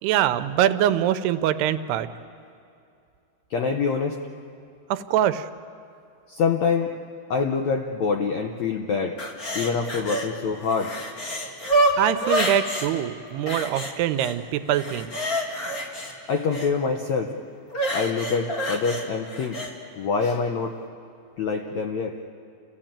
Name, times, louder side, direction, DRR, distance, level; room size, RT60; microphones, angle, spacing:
voice 1, 0.0-2.1 4.9-5.5 12.0-15.1, right 11 dB, 90° right, 11 dB, 2.8 m, -23 dB
voice 2, 3.5-4.2 6.3-6.9 7.3-9.2 9.5-10.9 16.3-17.3 17.9-19.6 20.0-20.8 21.4-22.1, left 5 dB, 80° left, 3 dB, 1.6 m, -25 dB
sound 1, 9.2-10.3 10.6-12.9 13.5-14.3 14.7-16.7 17.7-19.7 20.2-20.3, right 1 dB, 30° left, 1.8 m, -27 dB
29.0 x 15.5 x 8.9 m, 2.5 s
omnidirectional pair, 4.5 m